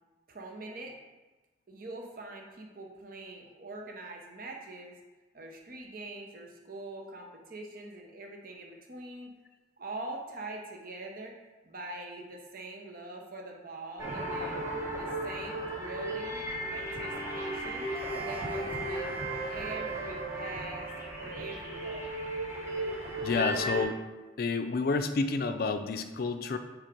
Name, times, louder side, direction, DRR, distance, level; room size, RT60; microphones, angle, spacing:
voice 1, 0.3-1.0 1.7-5.0 5.3-9.3 9.8-11.3 11.6-14.6 15.0-16.4 16.7-17.9 18.2-19.1 19.5-20.9 21.2-22.2, right 2 dB, 50° right, 1 dB, 0.9 m, -43 dB
sound 1, 14.0-23.8, right 1 dB, 15° right, 0.9 m, -35 dB
voice 2, 23.2-24.0 24.4-26.6, left 4 dB, 50° left, 8 dB, 0.4 m, -29 dB
4.8 x 4.5 x 5.1 m, 1.2 s
head